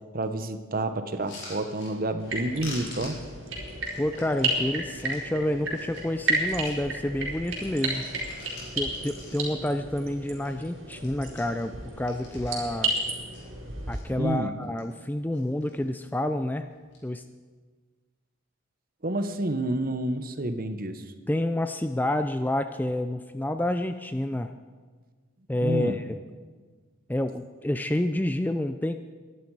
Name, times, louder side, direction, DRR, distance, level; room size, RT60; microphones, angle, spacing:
voice 1, 0.1-3.2 14.2-14.5 19.0-21.0 25.6-26.0, right 1 dB, 45° right, 9 dB, 1.0 m, -29 dB
sound 1, 1.1-2.3 2.6-5.2 5.7-6.8 7.2-9.7 10.0-10.1 10.4-10.7 10.9-12.9 13.3-14.0 14.5-15.1 15.3-15.9 16.7-17.0, left 2 dB, 55° left, 4.6 m, -46 dB
sound 2, 2.2-14.0, right 2 dB, 65° right, 4.2 m, -33 dB
voice 2, 4.0-8.1 8.7-12.9 13.9-16.7 17.0-17.2 21.3-24.5 25.5-26.2 27.1-28.9, left 1 dB, 10° left, 9 dB, 0.4 m, -29 dB
22.5 x 11.0 x 4.8 m, 1.5 s
head